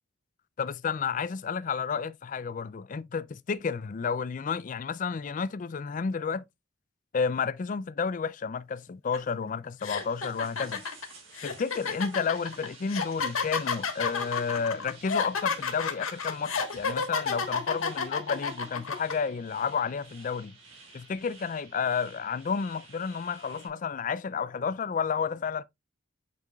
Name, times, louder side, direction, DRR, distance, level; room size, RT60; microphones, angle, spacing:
voice 1, 0.6-6.4 7.1-10.8 11.4-20.5 20.9-25.6, left 6 dB, 40° left, 0.4 m, -31 dB
sound 1, 9.1-9.3 9.8-19.1, left 5 dB, 85° left, 1.4 m, -31 dB
sound 2, 9.9-23.7, right 3 dB, 70° right, 3.7 m, -52 dB
8.2 x 5.3 x 2.3 m
head